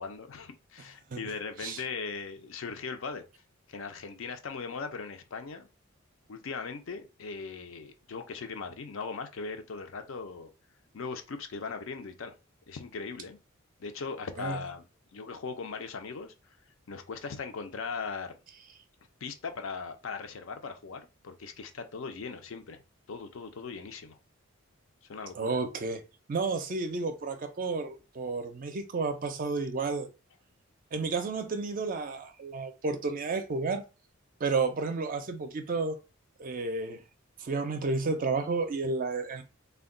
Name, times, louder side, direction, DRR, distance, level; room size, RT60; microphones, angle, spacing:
voice 1, 0.0-3.2 3.7-5.7 6.3-10.5 10.9-12.4 12.7-13.4 13.8-14.8 15.1-16.3 16.9-18.4 19.2-22.8 23.1-24.2 25.0-25.6 31.0-31.1, left 5 dB, 65° left, 0.5 m, -39 dB
voice 2, 25.3-26.0 26.3-30.1 30.9-33.8 34.4-36.0 36.4-37.0 37.4-39.4, right 4 dB, 40° right, 0.4 m, -31 dB
2.2 x 2.2 x 3.6 m
head